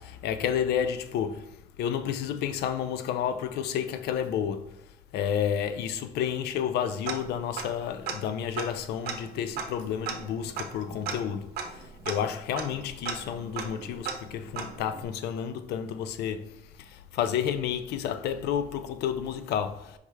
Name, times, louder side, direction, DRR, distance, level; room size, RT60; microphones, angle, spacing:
voice 1, 0.0-1.4 1.8-4.7 5.1-11.5 12.1-16.5 17.1-19.9, left 9 dB, 75° left, 0.4 m, -30 dB
Tick-tock, 7.1-7.8 8.1-8.2 8.5-15.0, right 6 dB, 70° right, 0.7 m, -37 dB
4.8 x 3.2 x 3.2 m
cardioid pair, 110°, 17 cm